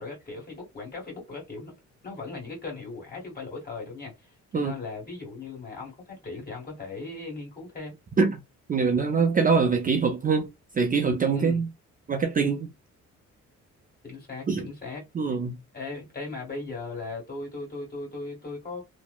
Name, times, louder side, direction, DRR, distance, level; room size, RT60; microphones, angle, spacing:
voice 1, 0.0-1.7 2.0-7.9 11.3-11.6 14.0-15.0 15.7-18.8, left 3 dB, 30° left, 1.7 m, -38 dB
voice 2, 8.7-10.5 10.8-11.7 12.1-12.7 14.5-14.7 15.1-15.5, right 5 dB, 30° right, 0.4 m, -23 dB
2.8 x 2.1 x 2.3 m
cardioid pair, 90°, 30 cm